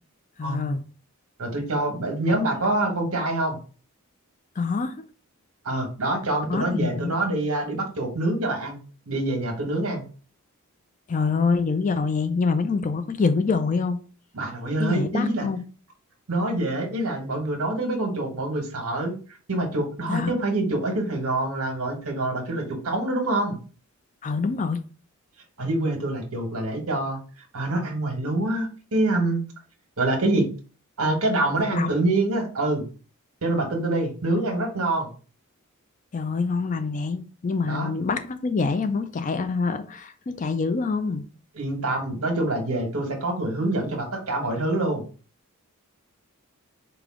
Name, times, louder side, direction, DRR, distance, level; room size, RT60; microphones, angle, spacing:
voice 1, 0.4-0.8 2.3-2.4 4.6-5.0 6.5-7.2 11.1-14.0 14.8-15.6 20.1-20.4 24.2-24.8 31.7-31.9 36.1-41.3, left 4 dB, 35° left, 0.4 m, -25 dB
voice 2, 1.4-3.6 5.6-10.0 14.3-15.5 16.3-19.1 19.5-23.6 25.6-27.2 27.5-29.4 30.0-30.5 31.0-32.9 33.4-35.1 37.6-37.9 41.5-45.0, right 2 dB, 70° right, 1.4 m, -26 dB
5.0 x 2.3 x 3.6 m
head